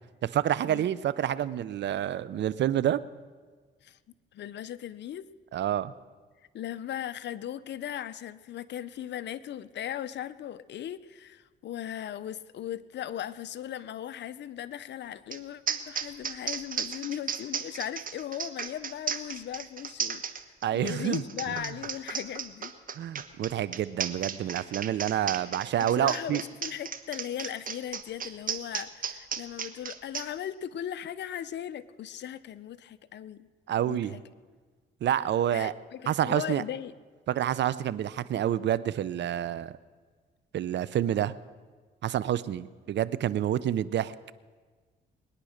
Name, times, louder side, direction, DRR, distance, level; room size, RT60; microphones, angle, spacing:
voice 1, 0.2-3.0 5.5-5.9 20.6-21.2 23.0-26.4 33.7-34.2 35.0-35.7 36.1-36.6 37.3-39.7 40.5-41.3 42.0-44.1, right 11 dB, 65° right, 17 dB, 0.7 m, -28 dB
voice 2, 4.3-5.2 6.5-20.2 20.7-22.7 25.8-33.5 33.8-34.2 35.5-36.9, left 10 dB, 60° left, 15 dB, 0.7 m, -38 dB
sound 1, 15.3-15.4 15.7-30.3, right 7 dB, 45° right, 1.1 m, -34 dB
21.5 x 10.0 x 6.5 m, 1.5 s
cardioid pair, 90°, 20 cm